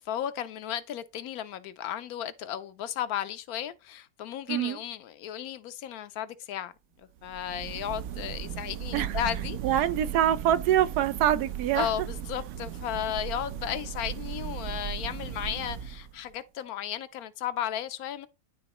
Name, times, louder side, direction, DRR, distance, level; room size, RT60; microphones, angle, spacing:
voice 1, 0.0-6.7 7.2-9.8 11.7-18.3, left 11 dB, 75° left, 1.0 m, -34 dB
sound 1, 7.2-16.3, right 9 dB, 65° right, 0.8 m, -37 dB
voice 2, 9.6-11.9, right 11 dB, 85° right, 1.2 m, -25 dB
11.0 x 3.8 x 2.9 m
omnidirectional pair, 1.7 m